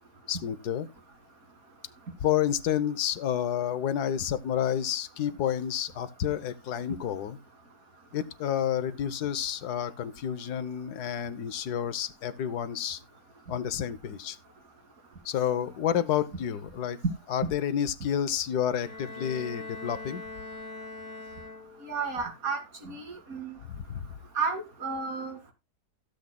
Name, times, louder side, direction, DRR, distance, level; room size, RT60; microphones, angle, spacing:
voice 1, 0.3-0.9 2.2-7.4 8.1-13.0 13.5-14.4 15.2-17.0 17.3-20.2 23.7-24.1, left 9 dB, 75° left, 1.4 m, -30 dB
Bowed string instrument, 18.8-22.0, left 3 dB, 50° left, 3.6 m, -42 dB
voice 2, 21.8-23.5 24.3-25.5, right 5 dB, 60° right, 2.7 m, -33 dB
16.5 x 7.9 x 2.2 m
omnidirectional pair, 1.7 m